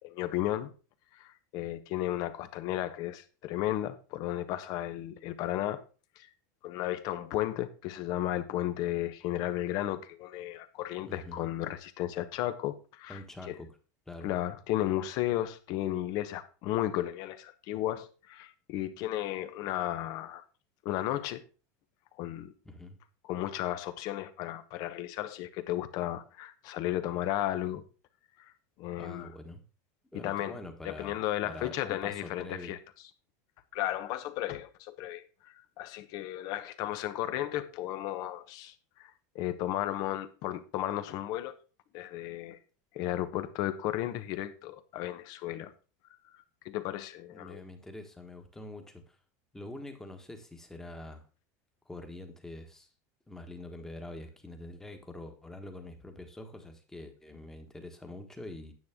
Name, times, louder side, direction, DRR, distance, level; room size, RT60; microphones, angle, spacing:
voice 1, 0.0-0.7 1.1-5.8 6.2-6.3 6.6-13.2 13.5-13.6 14.2-20.4 20.8-21.4 22.2-22.5 23.3-27.8 28.8-29.3 30.2-30.5 30.8-32.8 33.7-35.2 35.8-38.7 39.0-41.5 41.9-42.6 42.9-45.7 46.6-47.6, left 13 dB, 50° left, 1.0 m, -34 dB
voice 2, 11.0-11.5 13.1-13.7 14.1-14.3 22.6-23.0 29.0-29.6 30.1-32.8 47.3-49.2 49.5-51.3 51.8-52.9 53.3-58.7, left 2 dB, 5° left, 1.4 m, -45 dB
9.5 x 8.0 x 3.6 m
supercardioid pair, 155°, 9 cm